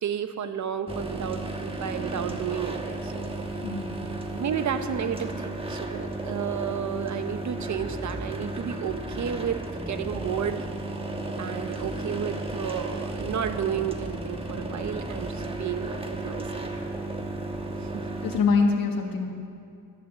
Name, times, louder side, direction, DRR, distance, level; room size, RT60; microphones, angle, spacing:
voice 1, 0.0-3.3 4.3-9.6 9.9-10.7 11.4-16.7 17.8-18.0, right 8 dB, 55° right, 10 dB, 0.9 m, -32 dB
sound 1, 0.9-18.4, right 2 dB, 15° right, 1.2 m, -34 dB
voice 2, 3.6-4.0 18.2-19.3, left 4 dB, 70° left, 2 dB, 1.5 m, -24 dB
11.5 x 10.0 x 7.4 m, 2.5 s
cardioid pair, 105°, 35 cm